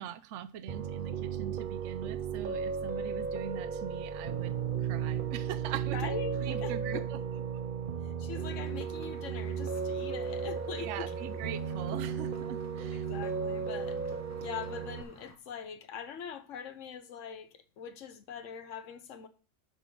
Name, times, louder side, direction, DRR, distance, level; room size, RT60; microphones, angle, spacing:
voice 1, 0.0-6.1 6.4-7.2 10.8-13.0, right 10 dB, 75° right, 0.9 m, -41 dB
Piano, 0.7-15.0, right 6 dB, 50° right, 0.8 m, -35 dB
voice 2, 5.9-7.0 8.0-11.4 12.9-14.0 14.4-19.3, left 7 dB, 80° left, 1.2 m, -42 dB
sound 1, 8.4-15.4, left 1 dB, 15° left, 1.4 m, -55 dB
6.9 x 6.2 x 6.1 m
omnidirectional pair, 1.3 m